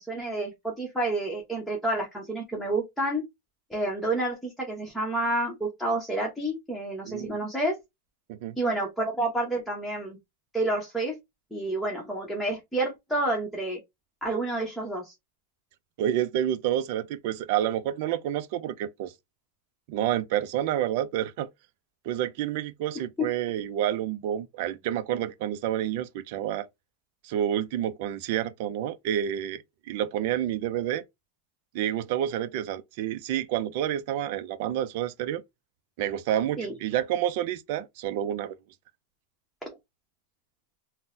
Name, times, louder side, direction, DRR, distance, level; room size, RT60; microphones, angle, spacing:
voice 1, 0.0-3.2 3.7-7.8 8.6-10.2 10.5-11.2 11.5-13.8 14.2-15.1 23.2-23.3 36.6-36.7, right 2 dB, ahead, 0.9 m, -29 dB
voice 2, 7.0-7.4 8.3-8.6 16.0-19.1 19.9-21.5 22.0-26.7 27.2-29.6 29.9-31.0 31.7-35.4 36.0-38.6, right 11 dB, 55° right, 0.4 m, -29 dB
3.8 x 2.1 x 2.6 m
supercardioid pair, 145°, 0 cm